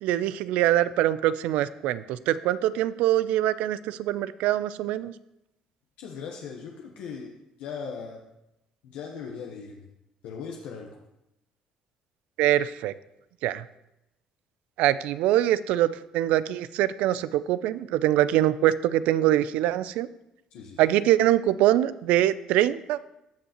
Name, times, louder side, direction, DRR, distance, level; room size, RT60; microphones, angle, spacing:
voice 1, 0.0-5.1 12.4-12.9 13.4-13.6 14.8-20.1 20.8-23.0, right 13 dB, 80° right, 16 dB, 0.3 m, -23 dB
voice 2, 6.0-7.3 7.6-8.2 8.8-9.9 10.2-10.9 20.5-21.0, left 6 dB, 80° left, 0 dB, 0.9 m, -38 dB
14.5 x 5.5 x 2.9 m, 0.87 s
cardioid pair, 90°, 2 cm